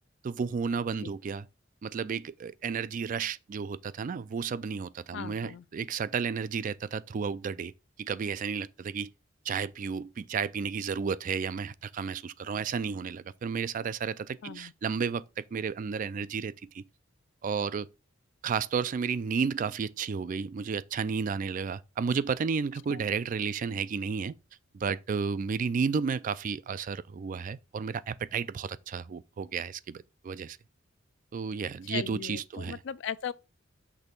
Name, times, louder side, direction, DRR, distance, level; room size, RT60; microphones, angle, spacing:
voice 1, 0.2-1.5 1.8-7.7 8.0-9.1 9.5-16.8 17.4-17.9 18.4-24.3 24.7-30.6 31.3-32.8, right 6 dB, 40° right, 0.3 m, -32 dB
voice 2, 5.1-5.6 14.4-14.7 22.9-23.0 31.9-33.3, left 8 dB, 60° left, 0.4 m, -38 dB
6.2 x 3.3 x 5.2 m
head